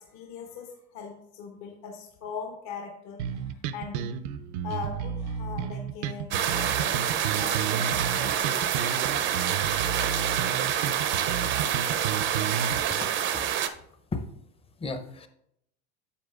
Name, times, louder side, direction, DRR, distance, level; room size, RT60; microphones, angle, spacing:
voice 1, 0.0-4.2 4.6-8.9, left 5 dB, 55° left, 3 dB, 1.1 m, -40 dB
sound 1, 3.2-12.8, right 8 dB, 80° right, 0.6 m, -32 dB
sound 2, 6.3-13.7, right 9 dB, 35° right, 0.5 m, -27 dB
voice 2, 13.0-13.5 14.1-14.2 14.8-15.3, left 3 dB, 15° left, 9 dB, 0.7 m, -35 dB
10.0 x 7.2 x 2.4 m, 0.76 s
supercardioid pair, 120°, 34 cm